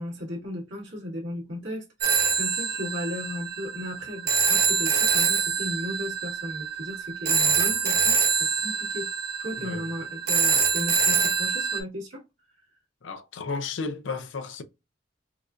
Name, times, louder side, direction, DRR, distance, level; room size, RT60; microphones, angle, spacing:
voice 1, 0.0-9.1 9.4-12.2 12.6-12.7, left 1 dB, 80° right, 1.9 m, -36 dB
Telephone, 2.0-11.8, right 6 dB, 55° right, 0.8 m, -25 dB
voice 2, 13.0-14.6, left 4 dB, 85° left, 0.5 m, -33 dB
4.6 x 2.4 x 2.4 m
head